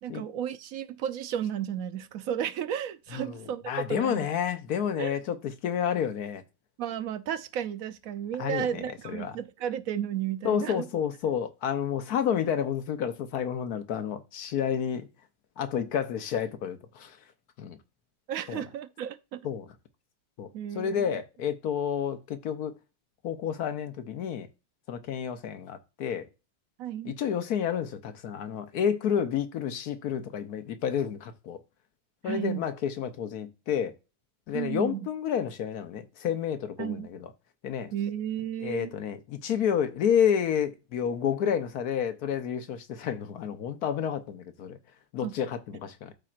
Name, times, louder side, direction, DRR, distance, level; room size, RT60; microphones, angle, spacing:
voice 1, 0.0-3.6 3.9-4.3 5.0-5.2 6.8-10.9 18.3-19.4 20.5-21.2 26.8-27.1 32.2-32.7 34.5-35.1 36.8-37.1 37.9-38.9 45.2-45.4, right 10 dB, 65° right, 1.0 m, -33 dB
voice 2, 3.1-6.4 8.4-9.4 10.4-15.1 15.6-17.2 17.6-17.8 18.5-18.6 19.4-19.7 20.4-20.5 20.7-22.7 23.2-24.5 24.9-26.3 27.0-31.6 32.2-34.0 34.5-37.3 37.6-37.9 38.6-44.8 45.1-46.1, left 8 dB, 75° left, 1.4 m, -30 dB
13.0 x 4.4 x 2.5 m
omnidirectional pair, 1.6 m